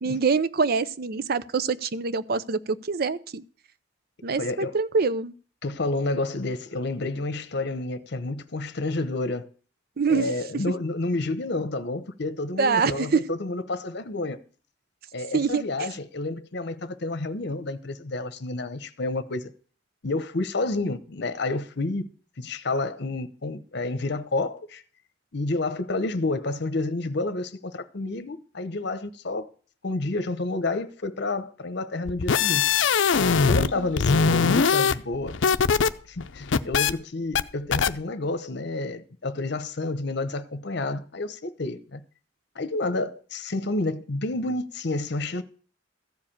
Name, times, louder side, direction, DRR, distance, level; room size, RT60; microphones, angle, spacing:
voice 1, 0.0-3.4 4.2-5.3 10.0-10.3 12.6-13.2 15.3-15.9 33.6-33.9, right 5 dB, 55° right, 0.6 m, -25 dB
voice 2, 4.4-4.8 5.6-9.5 10.1-14.4 15.1-19.5 20.0-22.1 22.4-24.8 25.3-29.5 29.8-32.7 33.5-35.4 36.1-42.0 42.6-45.4, left 2 dB, 60° left, 0.9 m, -29 dB
sound 1, 32.1-33.7 34.0-35.9 36.2-36.9 37.3-37.4 37.7-37.9, left 5 dB, 80° left, 0.5 m, -21 dB
14.0 x 4.9 x 8.8 m
head